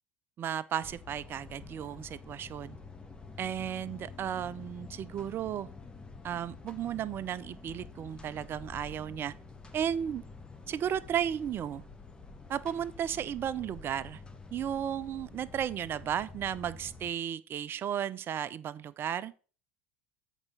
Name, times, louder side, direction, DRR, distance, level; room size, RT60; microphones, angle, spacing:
voice 1, 0.4-2.8 3.4-5.7 6.2-9.3 9.7-10.2 10.7-11.8 12.5-14.2 14.5-19.3, right 9 dB, 35° right, 0.5 m, -34 dB
sound 1, 0.8-17.1, left 3 dB, 15° left, 1.1 m, -48 dB
8.0 x 4.9 x 5.5 m
figure-of-eight pair, 70°, 6 cm